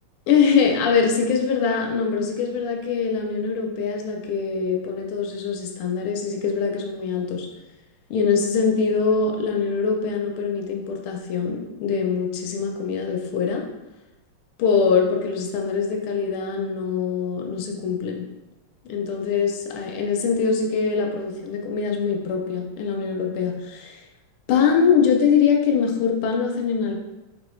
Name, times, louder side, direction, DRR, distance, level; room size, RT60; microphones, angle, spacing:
voice 1, 0.3-7.5 8.1-13.6 14.6-18.2 18.9-24.0 24.5-26.9, left 6 dB, 85° left, 1 dB, 1.5 m, -23 dB
3.4 x 3.0 x 3.1 m, 1.0 s
omnidirectional pair, 2.4 m